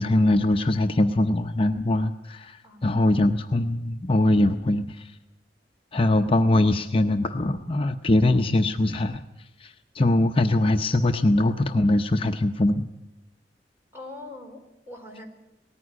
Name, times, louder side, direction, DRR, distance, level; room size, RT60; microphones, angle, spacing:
voice 1, 0.0-5.0 5.9-9.2 9.6-12.9, left 1 dB, 30° left, 5 dB, 0.7 m, -22 dB
voice 2, 2.6-3.0 13.9-15.3, left 2 dB, 15° right, 3 dB, 4.0 m, -42 dB
19.0 x 14.5 x 9.8 m, 0.93 s
head